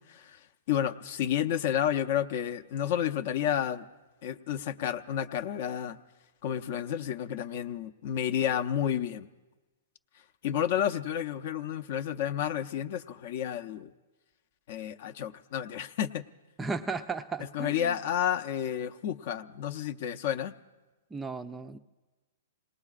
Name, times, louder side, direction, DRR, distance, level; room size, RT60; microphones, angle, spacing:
voice 1, 0.1-3.9 4.2-6.0 6.4-9.3 10.4-13.9 14.7-16.2 17.5-20.5, left 10 dB, 50° left, 10 dB, 0.6 m, -31 dB
voice 2, 16.6-18.0 21.1-21.8, right 4 dB, 10° right, 10 dB, 0.4 m, -35 dB
27.0 x 19.5 x 2.4 m, 1.2 s
hypercardioid pair, 145°, 0 cm